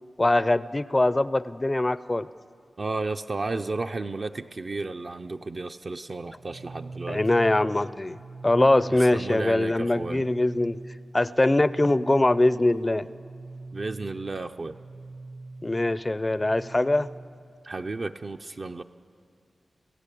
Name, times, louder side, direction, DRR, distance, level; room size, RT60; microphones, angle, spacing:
voice 1, 0.2-2.3 7.1-8.2 8.4-10.8 11.1-13.1 15.6-17.1, left 2 dB, 20° left, 16 dB, 0.5 m, -22 dB
voice 2, 2.8-7.2 8.9-10.2 13.7-14.8 17.6-18.8, right 3 dB, 40° right, 5 dB, 0.5 m, -33 dB
sound 1, 6.3-17.3, right 2 dB, 75° right, 7.3 m, -42 dB
27.5 x 16.0 x 8.4 m, 2.4 s
wide cardioid pair, 155°, 0 cm